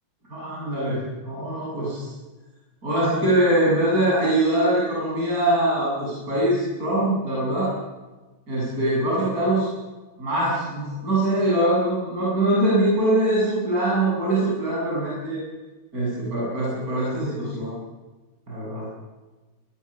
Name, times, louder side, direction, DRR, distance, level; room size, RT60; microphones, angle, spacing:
voice 1, 0.3-2.1 2.8-7.7 8.5-9.7 10.2-15.4 15.9-17.7 18.5-18.9, right 1 dB, 30° right, -6 dB, 8.2 m, -23 dB
21.5 x 20.5 x 7.3 m, 1.2 s
omnidirectional pair, 3.3 m